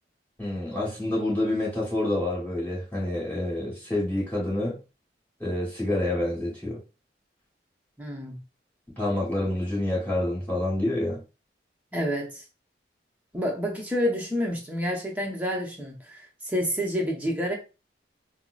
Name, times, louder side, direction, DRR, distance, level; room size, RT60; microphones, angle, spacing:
voice 1, 0.4-4.8 5.4-6.8 9.0-11.2, left 1 dB, 10° left, -6 dB, 1.4 m, -27 dB
voice 2, 8.0-8.4 11.9-12.4 13.3-17.5, equal, 10° right, -1 dB, 0.8 m, -29 dB
5.5 x 2.0 x 2.4 m, 0.31 s
head